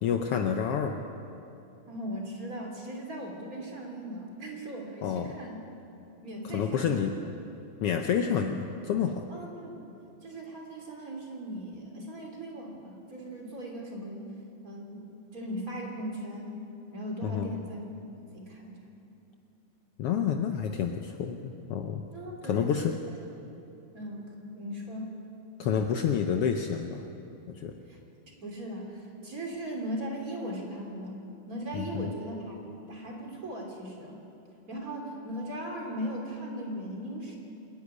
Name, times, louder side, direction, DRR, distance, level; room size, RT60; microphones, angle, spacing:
voice 1, 0.0-1.0 5.0-5.4 6.4-7.1 7.8-9.3 17.2-17.5 20.0-22.0 22.4-23.0 25.6-27.0 27.5-27.8 31.7-32.1, left 7 dB, 85° left, 5 dB, 1.3 m, -29 dB
voice 2, 1.9-5.6 6.2-7.1 9.3-9.8 10.2-14.3 14.6-15.1 15.3-16.6 16.9-17.9 18.3-18.9 22.1-22.7 23.9-24.3 24.6-25.1 27.9-28.0 28.3-31.2 31.5-34.1 34.7-37.4, equal, 25° right, 0 dB, 3.1 m, -38 dB
26.5 x 10.5 x 9.8 m, 2.8 s
omnidirectional pair, 3.6 m